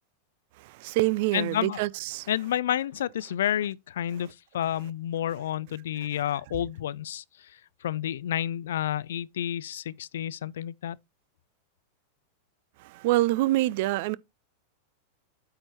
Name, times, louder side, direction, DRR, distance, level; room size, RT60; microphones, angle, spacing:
voice 1, 0.6-2.3 12.8-14.2, right 17 dB, 50° right, 0.4 m, -26 dB
voice 2, 1.3-1.8 2.3-4.3 4.5-11.0, left 11 dB, 60° left, 0.3 m, -30 dB
8.5 x 4.5 x 4.4 m
figure-of-eight pair, 90°, 0 cm